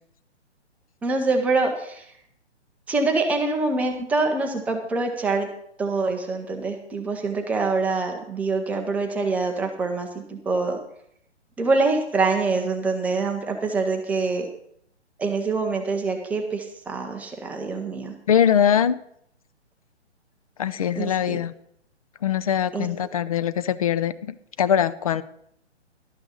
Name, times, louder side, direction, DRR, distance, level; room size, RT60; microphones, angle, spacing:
voice 1, 1.0-2.1 2.9-5.5 5.8-10.8 11.6-14.5 15.2-18.1 21.0-21.4 22.7-22.9, right 3 dB, 5° right, 3 dB, 0.7 m, -25 dB
voice 2, 18.3-19.0 20.6-21.5 22.2-25.2, left 9 dB, 30° left, 14 dB, 0.6 m, -22 dB
12.0 x 6.1 x 8.2 m, 0.71 s
figure-of-eight pair, 135°, 34 cm